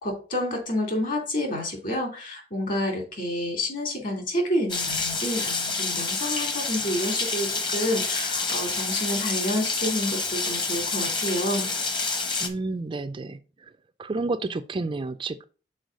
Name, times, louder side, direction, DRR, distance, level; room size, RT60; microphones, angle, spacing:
voice 1, 0.0-11.7, left 1 dB, 50° left, 3 dB, 2.6 m, -29 dB
Rain, 4.7-12.5, left 3 dB, 25° left, 1.0 m, -28 dB
voice 2, 12.4-13.7 14.0-15.4, right 3 dB, 25° right, 10 dB, 0.4 m, -30 dB
6.3 x 4.4 x 5.2 m, 0.36 s
head